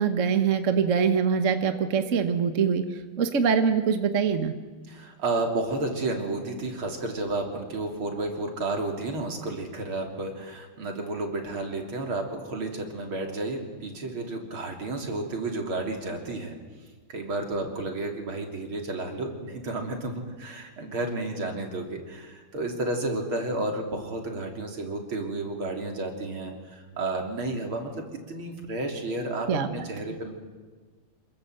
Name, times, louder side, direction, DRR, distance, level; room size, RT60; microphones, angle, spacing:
voice 1, 0.0-2.8 3.2-4.5 29.5-29.9, right 6 dB, 40° right, 8 dB, 1.4 m, -23 dB
voice 2, 4.9-16.6 17.1-30.3, right 2 dB, 65° right, 2 dB, 4.0 m, -32 dB
27.0 x 22.0 x 8.0 m, 1.4 s
omnidirectional pair, 2.4 m